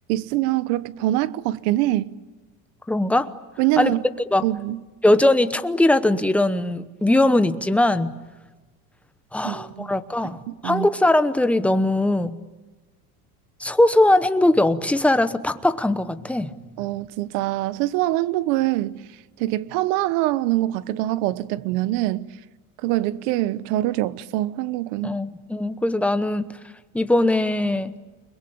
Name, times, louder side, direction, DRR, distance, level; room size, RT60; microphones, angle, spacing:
voice 1, 0.1-2.1 3.6-4.0 4.4-4.8 9.4-9.9 10.2-10.9 16.8-19.1 19.4-22.3 22.8-25.2, right 16 dB, 65° right, 1.2 m, -24 dB
voice 2, 2.9-3.3 3.8-3.9 4.3-4.4 5.0-8.2 9.3-12.4 13.6-16.5 25.0-26.5 26.9-27.9, left 1 dB, 5° left, 0.9 m, -20 dB
29.5 x 21.5 x 8.8 m
cardioid pair, 145°, 43 cm